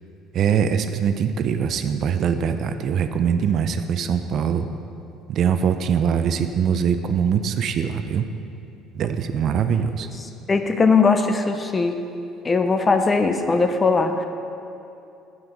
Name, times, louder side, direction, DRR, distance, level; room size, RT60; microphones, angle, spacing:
voice 1, 0.3-4.7 5.3-8.3 8.9-10.1, right 7 dB, 55° right, 9 dB, 0.4 m, -22 dB
voice 2, 10.5-12.0 12.4-14.3, left 4 dB, 25° left, 7 dB, 0.6 m, -19 dB
8.8 x 6.3 x 4.6 m, 2.7 s
cardioid pair, 105°, 0 cm